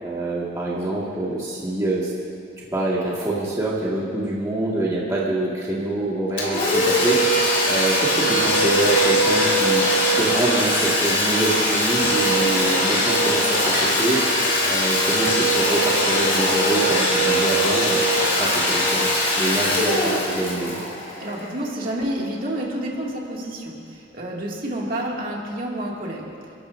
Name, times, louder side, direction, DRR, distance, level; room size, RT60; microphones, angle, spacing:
voice 1, 0.0-2.1 2.7-14.2 14.7-18.0 18.3-19.1 19.4-20.8, right 2 dB, 15° right, -7 dB, 1.9 m, -25 dB
Domestic sounds home sounds, 6.4-21.8, equal, 40° left, 2.9 m, -21 dB
voice 2, 21.2-26.5, right 1 dB, 45° right, -3 dB, 2.3 m, -29 dB
30.0 x 12.5 x 2.7 m, 2.5 s
head